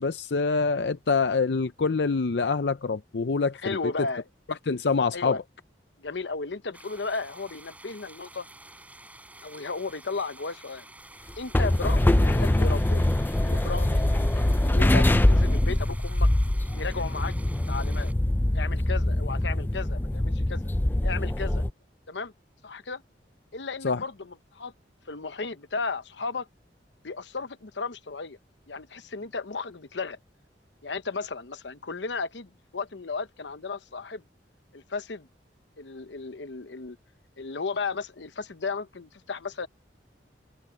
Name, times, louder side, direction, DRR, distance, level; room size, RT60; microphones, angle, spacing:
voice 1, 0.0-3.8 4.7-5.4 23.8-24.0, left 4 dB, 70° left, 0.6 m, -25 dB
voice 2, 3.6-4.2 5.1-5.4 6.0-8.5 9.4-10.8 11.4-13.0 13.4-16.3 16.7-17.3 17.7-18.1 18.5-20.6 21.0-21.6 22.1-22.3 22.6-23.0 23.5-24.7 25.1-26.5 27.0-28.4 28.7-30.2 30.8-34.2 34.7-35.3 35.8-37.0 37.4-39.7, left 4 dB, 85° left, 1.0 m, -34 dB
sound 1, 6.7-18.1, right 2 dB, 10° right, 4.3 m, -49 dB
sound 2, 11.3-21.7, left 1 dB, 10° left, 0.4 m, -23 dB
head